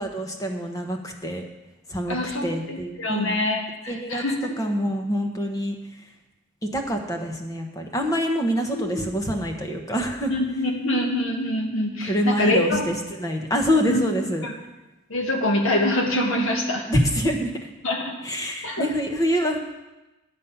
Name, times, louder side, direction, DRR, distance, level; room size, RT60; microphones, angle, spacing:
voice 1, 0.0-1.4 1.9-2.2 2.4-3.4 3.9-4.2 4.6-5.7 6.6-10.3 12.0-14.5 16.9-17.5 18.2-19.6, equal, 15° left, 3 dB, 1.0 m, -25 dB
voice 2, 2.1-4.3 8.7-9.0 10.3-12.9 13.9-14.0 14.4-14.5 15.1-16.8 17.8-18.1 18.6-18.9, left 1 dB, 75° left, 1 dB, 1.7 m, -25 dB
10.5 x 7.3 x 5.6 m, 1.0 s
head